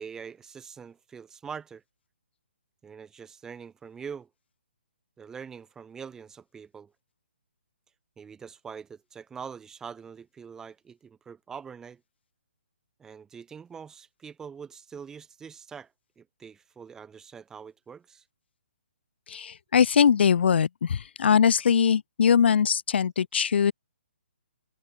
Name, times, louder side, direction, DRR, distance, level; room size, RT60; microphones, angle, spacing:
voice 1, 0.0-1.8 2.8-4.3 5.2-6.9 8.2-12.0 13.0-15.9 16.2-18.2, right 6 dB, 10° right, 0.8 m, -43 dB
voice 2, 19.3-23.7, left 7 dB, 65° left, 0.5 m, -22 dB
hypercardioid pair, 150°, 6 cm